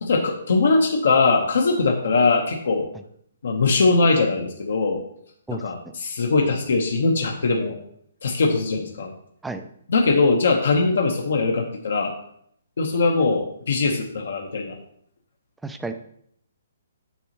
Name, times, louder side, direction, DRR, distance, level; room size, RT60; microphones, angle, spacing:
voice 1, 0.0-2.9 3.4-5.0 5.5-7.8 8.2-9.1 9.9-12.1 12.8-14.7, left 3 dB, 70° left, 2 dB, 1.0 m, -21 dB
voice 2, 15.6-15.9, right 3 dB, 5° right, 8 dB, 0.4 m, -31 dB
7.0 x 6.9 x 3.0 m, 0.67 s
hypercardioid pair, 165°, 0 cm